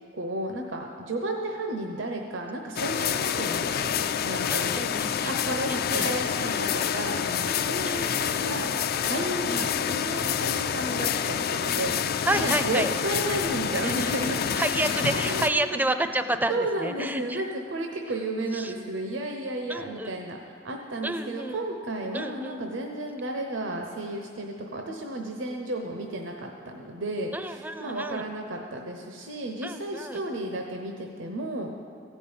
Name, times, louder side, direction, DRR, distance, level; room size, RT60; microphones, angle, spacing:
voice 1, 0.1-4.9 5.2-12.0 12.4-15.8 16.5-31.7, right 1 dB, 80° right, 2 dB, 0.8 m, -33 dB
sound 1, 2.8-15.5, left 8 dB, 55° left, 0.4 m, -28 dB
voice 2, 4.5-5.3 5.7-6.1 7.9-8.1 9.5-9.7 12.2-12.9 14.6-16.5 16.8-17.4 18.5-18.7 19.7-20.1 21.0-21.6 22.1-22.6 27.3-28.2 29.6-30.2, right 1 dB, 10° right, 9 dB, 0.5 m, -29 dB
15.5 x 5.3 x 8.7 m, 2.4 s
head